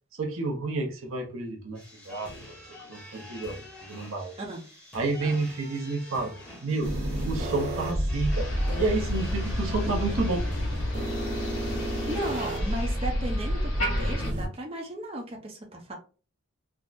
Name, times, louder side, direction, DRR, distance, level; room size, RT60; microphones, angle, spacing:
voice 1, 0.1-2.4 2.8-3.6 3.9-4.3 4.9-6.3 6.6-7.0 7.2-10.4, right 3 dB, 75° right, 0.7 m, -30 dB
sound 1, 1.8-12.9, equal, 10° left, 1.0 m, -46 dB
sound 2, 6.8-14.5, equal, 55° right, 1.0 m, -29 dB
Motor vehicle (road), 8.3-14.3, equal, 75° left, 1.5 m, -37 dB
voice 2, 12.1-15.9, right 1 dB, 30° right, 0.6 m, -35 dB
3.5 x 2.1 x 2.5 m
head